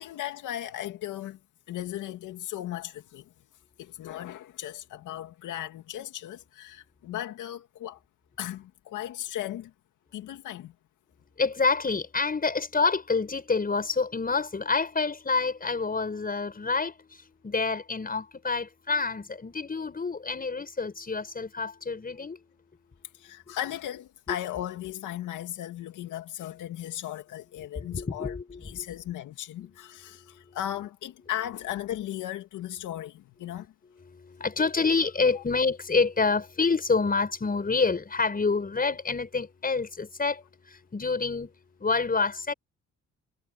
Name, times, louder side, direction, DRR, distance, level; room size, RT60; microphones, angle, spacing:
voice 1, 0.0-1.4 1.7-3.2 3.8-8.0 8.4-9.7 10.1-10.7 23.1-28.3 28.6-33.7, left 12 dB, 85° left, 2.5 m, -36 dB
voice 2, 11.4-22.4 27.7-28.9 30.5-30.6 33.5-33.6 34.0-41.5 41.8-42.5, left 4 dB, 30° left, 6.3 m, -28 dB
cardioid pair, 90°, 30 cm